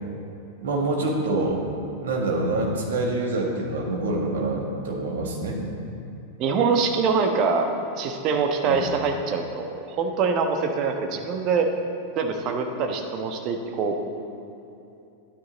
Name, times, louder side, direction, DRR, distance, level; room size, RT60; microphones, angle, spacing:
voice 1, 0.6-1.6 2.0-5.6 8.7-8.8, right 2 dB, 60° right, 0 dB, 1.7 m, -26 dB
voice 2, 6.4-7.7 7.9-11.7 12.1-14.0, right 5 dB, 35° right, 4 dB, 1.1 m, -24 dB
12.5 x 9.6 x 4.0 m, 2.8 s
figure-of-eight pair, 90°, 0 cm